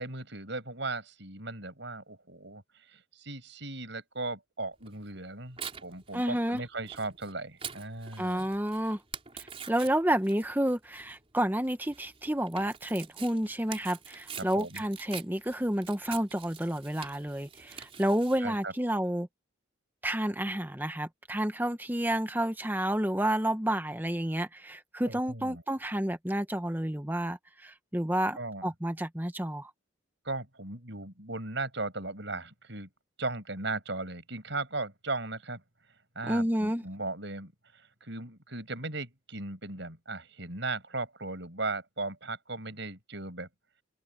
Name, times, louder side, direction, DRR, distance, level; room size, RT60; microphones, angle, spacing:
voice 1, 0.0-2.6 2.9-8.5 14.4-14.8 18.4-18.7 25.1-25.6 28.4-28.6 30.2-32.9 33.2-35.6 36.2-43.5, right 2 dB, 60° right, 7.2 m, -37 dB
Tearing, 4.8-18.4, right 7 dB, 30° right, 4.3 m, -46 dB
voice 2, 6.1-6.6 8.2-9.0 9.7-19.3 20.0-29.7 36.3-36.8, right 1 dB, 10° right, 1.1 m, -30 dB
open air
head